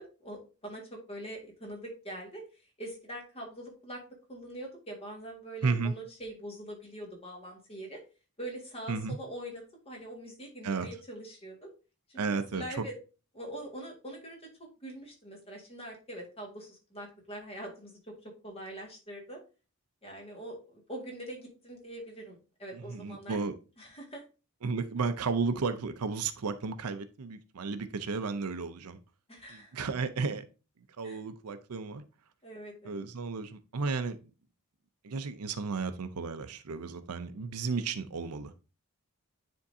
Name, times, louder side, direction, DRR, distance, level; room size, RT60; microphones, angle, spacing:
voice 1, 0.2-2.4 2.8-4.0 4.3-8.0 8.4-11.7 12.1-13.0 13.3-14.4 14.8-18.1 18.4-19.4 20.0-23.4 23.8-24.2 29.3-29.8 31.0-31.2 32.4-33.0, right 1 dB, 25° left, 1.9 m, -43 dB
voice 2, 5.6-5.9 8.9-9.2 10.6-10.9 12.2-12.8 22.7-23.5 24.6-29.0 29.5-30.4 31.0-32.0 32.8-34.2 35.0-38.7, right 4 dB, 80° right, 0.6 m, -33 dB
9.7 x 3.7 x 2.7 m
head